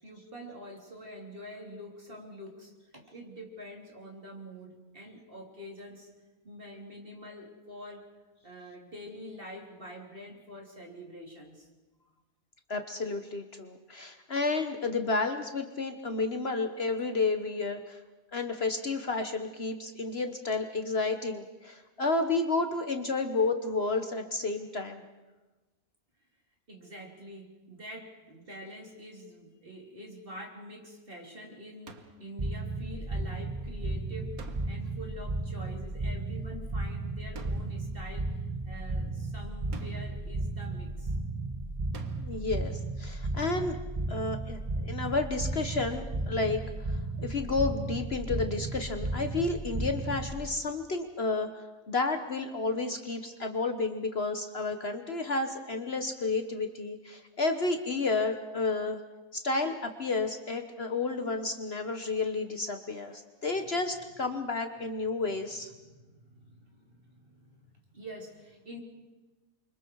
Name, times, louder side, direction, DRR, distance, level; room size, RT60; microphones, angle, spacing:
voice 1, 0.0-6.1 6.4-8.1 8.4-11.7 26.7-41.2 65.7-68.8, equal, 40° right, 0 dB, 3.7 m, -46 dB
voice 2, 12.7-18.0 18.3-25.0 42.2-43.8 44.1-59.0 59.3-65.7, left 3 dB, 50° left, 7 dB, 1.4 m, -31 dB
sound 1, 31.9-32.3 34.4-35.0 37.3-37.9 39.7-40.3 41.9-42.5, right 4 dB, 85° right, 1.8 m, -48 dB
sound 2, 32.4-50.5, right 2 dB, 25° right, 1.2 m, -34 dB
29.5 x 25.0 x 4.7 m, 1.2 s
omnidirectional pair, 1.5 m